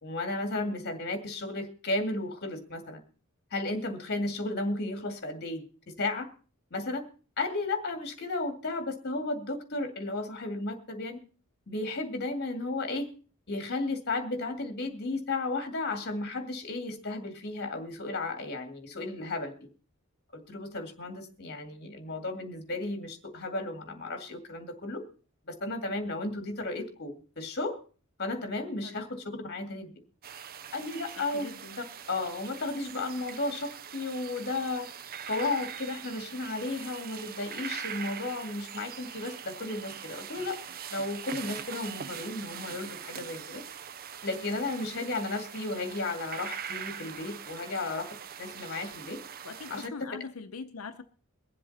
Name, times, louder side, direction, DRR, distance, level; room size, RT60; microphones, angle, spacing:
voice 1, 0.0-3.0 3.5-5.6 6.0-6.3 6.7-7.0 7.4-11.2 11.7-13.1 13.5-19.5 20.3-25.0 25.5-27.8 28.2-29.9 30.7-31.5 32.1-34.9 35.3-40.6 40.9-43.6 44.2-48.1 48.4-49.2 49.7-49.9, left 2 dB, 50° left, 6 dB, 2.1 m, -34 dB
Forest Ambience, 30.2-49.9, right 8 dB, 45° right, 0.5 m, -42 dB
voice 2, 31.2-31.8 47.7-47.8 49.4-51.0, left 4 dB, 75° left, 7 dB, 0.8 m, -43 dB
23.0 x 7.7 x 4.2 m, 0.38 s
head